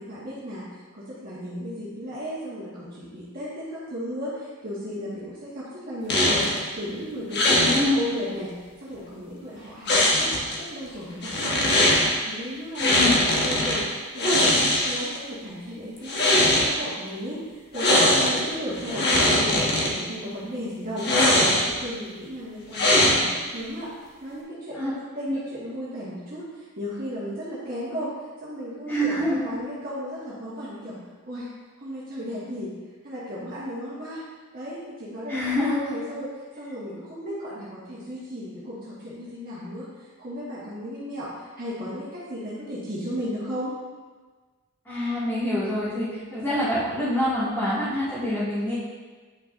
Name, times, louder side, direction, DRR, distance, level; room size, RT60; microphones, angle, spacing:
voice 1, 0.0-11.9 12.3-31.0 31.3-31.5 31.8-32.7 33.0-34.2 34.5-43.8, equal, 40° right, -9 dB, 1.5 m, -35 dB
sound 1, 6.1-6.6 7.3-7.8 9.9-10.6 11.2-12.1 12.8-13.8 14.2-15.2 16.0-16.7 17.7-18.4 18.8-19.9 21.0-21.8 22.7-23.4, left 1 dB, 50° left, 1.3 m, -20 dB
voice 2, 7.4-8.0 12.8-13.2 24.8-24.9 25.3-25.4 28.9-29.6 35.3-35.9 44.9-48.8, left 1 dB, 10° left, -14 dB, 2.0 m, -26 dB
9.1 x 5.7 x 2.6 m, 1.4 s
head